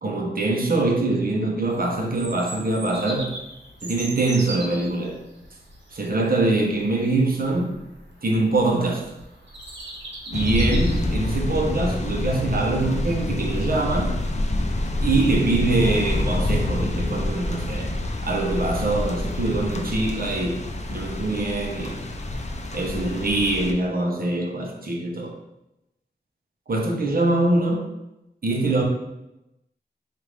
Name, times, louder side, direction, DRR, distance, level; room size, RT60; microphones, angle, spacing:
voice 1, 0.0-3.4 3.8-5.2 5.9-7.7 8.2-9.1 10.3-14.2 15.0-17.9 18.2-22.0 22.7-25.4 26.7-27.9 28.4-28.8, right 2 dB, 55° right, 0 dB, 0.8 m, -23 dB
Bird vocalization bird call bird song, 1.7-11.3, right 1 dB, 85° right, 0.9 m, -39 dB
sound 1, 10.3-23.7, left 1 dB, 40° left, 0.5 m, -27 dB
4.6 x 2.5 x 3.4 m, 0.90 s
wide cardioid pair, 70°, 18 cm